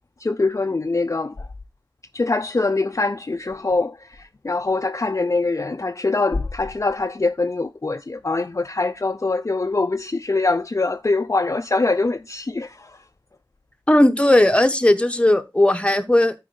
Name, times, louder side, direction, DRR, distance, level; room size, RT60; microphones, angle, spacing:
voice 1, 0.2-1.5 2.1-4.1 4.4-12.9, left 3 dB, 40° left, 0.5 m, -23 dB
voice 2, 13.9-16.3, left 1 dB, 15° left, 1.0 m, -16 dB
12.0 x 4.7 x 3.8 m
wide cardioid pair, 45°, 8 cm